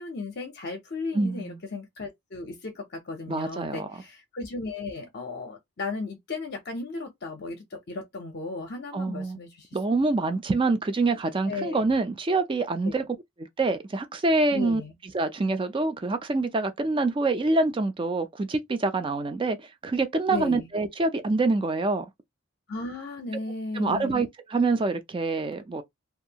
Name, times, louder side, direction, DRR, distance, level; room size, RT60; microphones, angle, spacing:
voice 1, 0.0-9.7 10.3-10.4 11.5-12.0 12.8-13.0 14.5-14.9 20.3-20.7 22.7-24.2, left 3 dB, 50° left, 0.6 m, -35 dB
voice 2, 1.1-1.6 3.3-3.9 8.9-9.4 9.7-13.0 13.6-14.8 15.1-19.6 19.8-22.1 23.7-25.8, right 3 dB, 25° right, 0.3 m, -26 dB
2.6 x 2.4 x 2.7 m
head